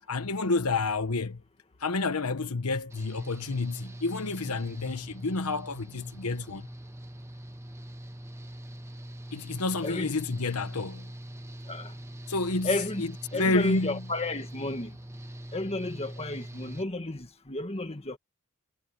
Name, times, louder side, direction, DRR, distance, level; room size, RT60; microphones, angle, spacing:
voice 1, 0.1-1.4 1.8-6.7 9.3-11.1 12.3-14.0, left 3 dB, 90° left, 1.1 m, -29 dB
Engine / Mechanical fan, 2.9-16.8, right 1 dB, 10° right, 1.1 m, -43 dB
voice 2, 9.8-10.1 11.7-11.9 12.6-13.1 13.3-14.9 15.5-18.2, left 2 dB, 30° left, 1.8 m, -32 dB
head